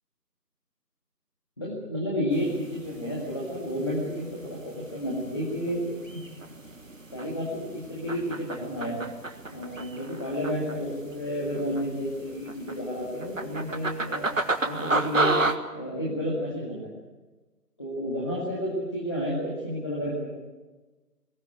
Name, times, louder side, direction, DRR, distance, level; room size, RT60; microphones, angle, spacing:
voice 1, 1.6-5.8 6.1-6.2 7.1-9.0 9.5-14.3 14.6-15.3 15.7-17.0 17.8-20.3, equal, 15° left, -5 dB, 2.0 m, -31 dB
sound 1, 2.3-15.5, right 2 dB, 55° right, 1.7 m, -33 dB
21.5 x 18.5 x 8.8 m, 1.2 s
figure-of-eight pair, 170°, 48 cm